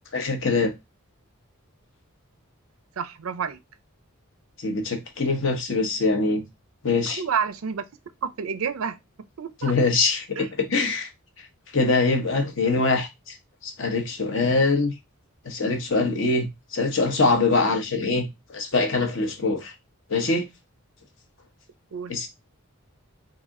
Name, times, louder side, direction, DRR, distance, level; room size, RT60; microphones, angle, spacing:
voice 1, 0.1-0.7 4.6-6.4 6.8-7.2 9.6-11.1 11.7-13.3 13.6-14.9 15.4-16.5 16.7-19.7 20.1-20.4 22.1-22.3, left 3 dB, 60° left, 1.0 m, -23 dB
voice 2, 3.0-3.6 7.1-7.8 8.2-9.7 10.4-10.5 21.9-22.3, right 6 dB, 75° right, 0.5 m, -30 dB
4.1 x 2.7 x 3.6 m
head